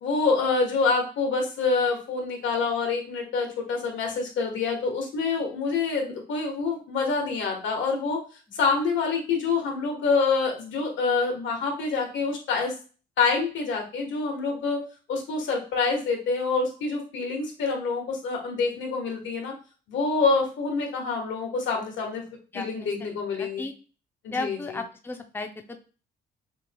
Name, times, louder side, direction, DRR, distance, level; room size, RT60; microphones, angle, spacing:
voice 1, 0.0-8.2 8.5-12.7 13.2-14.8 15.1-19.5 19.9-22.2 22.5-23.6 24.2-24.8, left 4 dB, 80° left, 1 dB, 1.4 m, -26 dB
voice 2, 22.5-22.9 23.3-23.7 24.3-25.8, left 3 dB, 10° left, 5 dB, 0.5 m, -34 dB
6.1 x 2.8 x 2.3 m, 0.36 s
cardioid pair, 90°, 19 cm